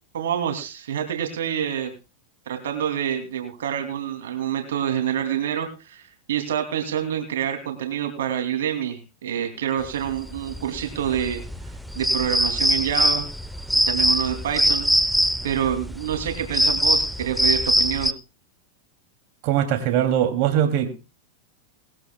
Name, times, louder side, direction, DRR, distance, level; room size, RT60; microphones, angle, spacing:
voice 1, 0.1-1.9 2.5-11.4 11.9-13.3 13.9-14.9 15.4-18.1, right 9 dB, 85° right, 2.6 m, -27 dB
sound 1, 10.1-18.1, equal, ahead, 0.7 m, -22 dB
voice 2, 19.4-20.9, right 10 dB, 55° right, 2.5 m, -21 dB
20.5 x 15.5 x 2.2 m
hypercardioid pair, 120°, 0 cm